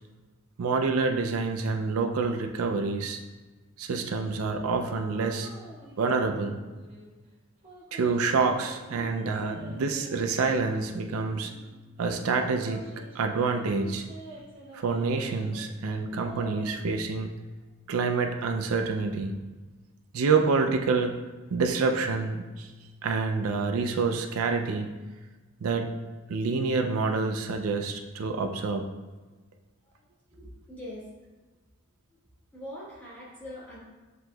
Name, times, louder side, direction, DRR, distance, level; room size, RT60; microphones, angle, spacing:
voice 1, 0.6-3.2 3.8-5.5 6.0-6.6 7.9-11.5 12.0-12.9 13.1-14.1 14.7-17.3 17.9-19.3 20.1-21.2 21.5-22.7 23.0-24.9 25.6-25.9 26.3-28.8, right 4 dB, 85° right, 5 dB, 0.4 m, -27 dB
sound 1, 4.8-6.0 6.3-7.1 7.6-11.8 12.4-15.7 16.0-16.8, right 2 dB, 25° right, 1.1 m, -47 dB
voice 2, 30.3-31.1 32.5-33.8, left 1 dB, 10° left, -9 dB, 1.3 m, -42 dB
7.6 x 2.9 x 2.3 m, 1.2 s
head